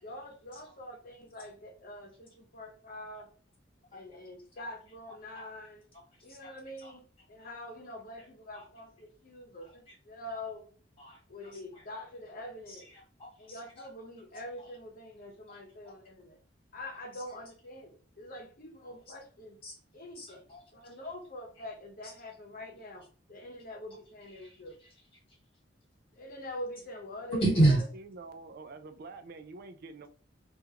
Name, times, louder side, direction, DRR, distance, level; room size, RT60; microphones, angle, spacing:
voice 1, 0.0-3.3 3.9-5.8 6.2-10.7 11.3-12.9 13.4-16.4 16.7-19.6 19.9-20.4 20.7-24.8 26.1-27.4, left 1 dB, 50° left, 0.9 m, -45 dB
voice 2, 9.6-9.9 10.3-10.4 11.0-11.8 12.7-13.9 14.6-14.7 15.5-15.6 15.8-15.9 17.1-17.2 19.6-19.8 20.1-20.6 22.0-22.1 24.2-25.4 27.3-27.8, right 2 dB, 30° left, 1.4 m, -32 dB
voice 3, 28.1-30.1, right 3 dB, 55° right, 0.4 m, -46 dB
3.5 x 2.5 x 2.8 m
head